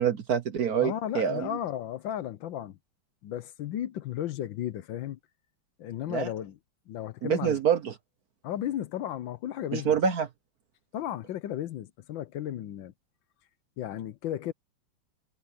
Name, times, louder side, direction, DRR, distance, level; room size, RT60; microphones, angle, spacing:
voice 1, 0.0-1.5 6.1-6.3 7.2-7.9 9.7-10.3, right 8 dB, 55° right, 1.2 m, -26 dB
voice 2, 0.8-2.8 3.2-5.2 5.8-6.6 6.9-7.6 8.4-10.0 10.9-12.9 13.8-14.5, left 11 dB, 70° left, 1.4 m, -34 dB
omnidirectional pair, 2.3 m